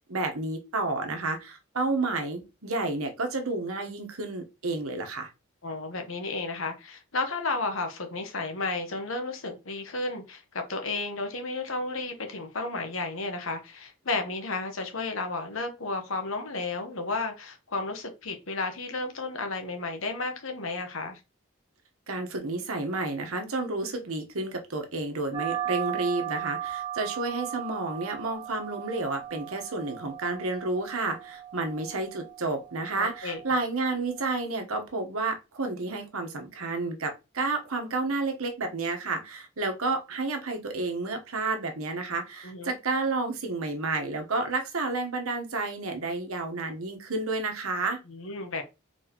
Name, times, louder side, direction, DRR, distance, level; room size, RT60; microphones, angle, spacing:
voice 1, 0.1-5.3 22.1-48.0, right 3 dB, 85° right, 1.1 m, -31 dB
voice 2, 5.6-21.2 33.0-33.4 42.4-42.7 48.1-48.6, left 3 dB, 75° left, 1.1 m, -33 dB
sound 1, 25.3-34.4, right 11 dB, 20° right, 0.7 m, -37 dB
4.2 x 4.1 x 3.0 m
head